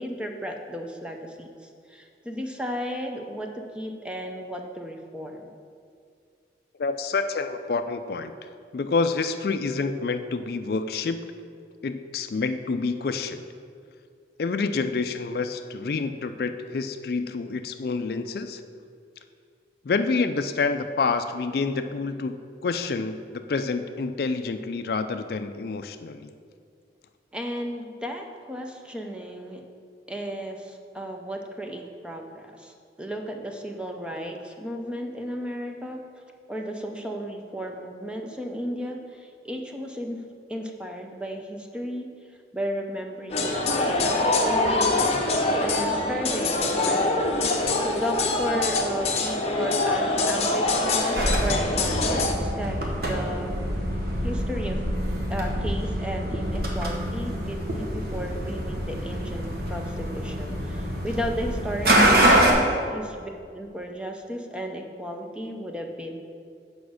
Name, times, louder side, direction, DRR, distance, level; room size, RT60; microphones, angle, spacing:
voice 1, 0.0-3.5 3.7-5.5 27.3-29.6 30.1-36.0 36.5-40.2 40.5-42.1 42.5-47.7 47.9-53.5 54.2-54.8 55.3-66.2, equal, 5° right, 2 dB, 0.6 m, -34 dB
voice 2, 6.8-11.2 11.8-13.4 14.4-18.6 19.8-22.4 22.6-26.3, left 4 dB, 55° left, 9 dB, 0.4 m, -28 dB
sound 1, 43.3-52.3, left 2 dB, 35° left, 0.8 m, -24 dB
sound 2, 51.1-62.5, right 1 dB, 55° right, 1.2 m, -25 dB
8.3 x 5.1 x 6.3 m, 2.3 s
head